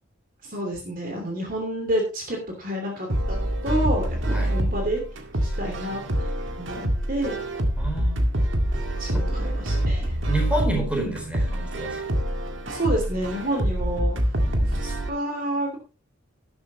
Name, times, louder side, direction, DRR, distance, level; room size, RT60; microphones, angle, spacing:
voice 1, 0.4-5.0 5.4-6.3 6.6-7.4 9.0-10.1 12.7-14.2 14.7-15.8, right 1 dB, 40° right, 2 dB, 2.9 m, -29 dB
sound 1, 3.1-15.1, right 1 dB, 60° right, 2.0 m, -26 dB
voice 2, 7.8-8.2 9.1-9.2 10.3-12.0 14.5-14.7, right 1 dB, 5° right, 1 dB, 4.4 m, -29 dB
12.5 x 11.5 x 3.1 m, 0.31 s
head